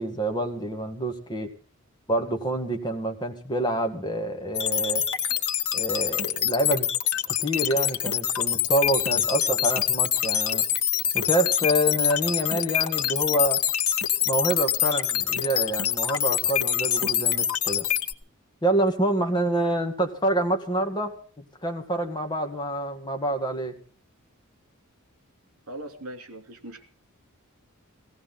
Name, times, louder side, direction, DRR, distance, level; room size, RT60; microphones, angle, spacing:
voice 1, 0.0-1.5 2.1-5.0 5.7-6.9 7.4-10.6 11.1-13.6 14.3-17.9 18.6-23.8, right 1 dB, 20° left, 4 dB, 1.9 m, -27 dB
sound 1, 4.6-18.1, left 9 dB, 85° left, 1.4 m, -25 dB
voice 2, 25.7-26.8, right 1 dB, 75° right, 6 dB, 2.8 m, -40 dB
18.0 x 17.5 x 3.8 m, 0.42 s
head